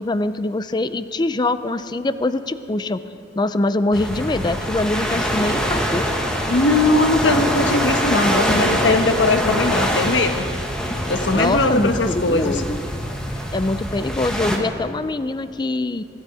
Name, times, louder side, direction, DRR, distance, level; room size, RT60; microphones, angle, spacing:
voice 1, 0.0-3.0 3.4-6.0 11.3-12.8 13.5-16.0, left 2 dB, 25° left, 13 dB, 0.5 m, -23 dB
sound 1, 3.9-14.6, equal, 5° left, 1.5 m, -24 dB
voice 2, 6.5-10.4 11.1-12.6, left 2 dB, 90° left, 8 dB, 1.1 m, -19 dB
24.0 x 12.0 x 4.8 m, 2.6 s
head